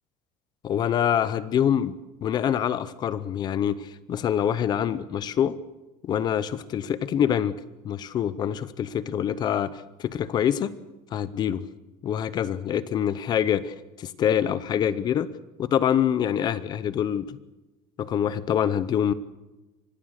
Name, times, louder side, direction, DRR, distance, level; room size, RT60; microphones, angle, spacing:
voice 1, 0.6-1.9 2.2-5.6 6.0-7.6 7.8-10.7 11.1-11.7 12.0-15.3 15.6-17.4 18.0-19.1, left 9 dB, 30° left, 16 dB, 0.7 m, -25 dB
25.0 x 19.0 x 6.5 m, 1.1 s
cardioid pair, 180°, 14 cm